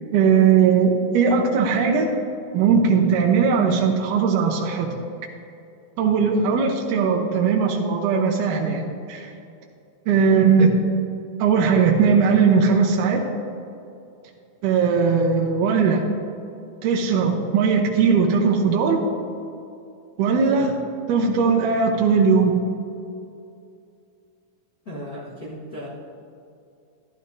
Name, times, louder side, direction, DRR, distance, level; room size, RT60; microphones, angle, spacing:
voice 1, 0.1-2.1 2.5-4.9 6.0-9.3 10.1-10.7 11.4-13.3 14.6-16.1 16.8-19.0 20.2-20.8 21.1-22.6, right 5 dB, 75° right, 1 dB, 2.1 m, -19 dB
voice 2, 24.8-25.9, equal, 70° left, -8 dB, 0.8 m, -36 dB
13.0 x 12.0 x 2.6 m, 2.6 s
omnidirectional pair, 4.1 m